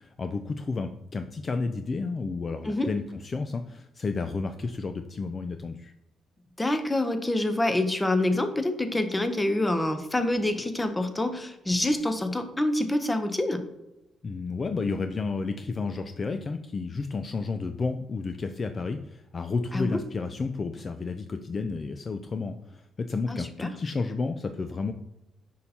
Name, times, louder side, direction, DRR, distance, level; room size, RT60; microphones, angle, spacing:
voice 1, 0.0-5.9 14.2-24.9, left 4 dB, 40° left, 8 dB, 0.4 m, -31 dB
voice 2, 6.6-13.6 19.7-20.0 23.3-23.7, left 1 dB, 15° left, 8 dB, 0.8 m, -26 dB
6.3 x 5.5 x 2.8 m, 0.90 s
cardioid pair, 90°, 0 cm